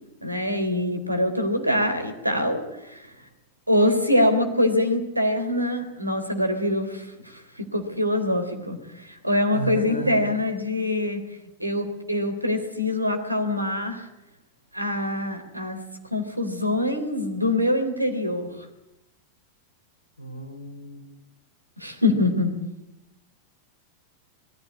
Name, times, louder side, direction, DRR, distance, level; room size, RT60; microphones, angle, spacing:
voice 1, 0.2-3.1 3.7-11.2 11.6-14.1 14.7-15.8 16.1-18.5 21.8-22.5, left 1 dB, 85° right, 7 dB, 3.6 m, -24 dB
voice 2, 9.5-10.3 20.2-21.2, right 1 dB, 80° left, 6 dB, 4.8 m, -33 dB
23.0 x 15.0 x 9.8 m, 0.90 s
figure-of-eight pair, 90°, 0 cm